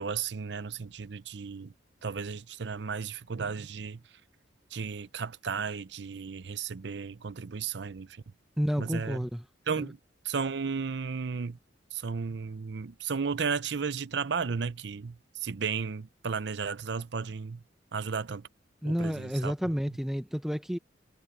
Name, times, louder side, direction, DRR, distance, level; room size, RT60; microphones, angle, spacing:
voice 1, 0.0-1.7 2.0-4.0 4.7-8.2 8.8-9.2 9.7-10.0 10.2-11.6 11.9-17.6 17.9-18.4 18.8-19.5, right 5 dB, 65° right, 0.6 m, -34 dB
voice 2, 8.6-9.4 9.8-9.9 18.8-20.8, equal, ahead, 0.7 m, -30 dB
head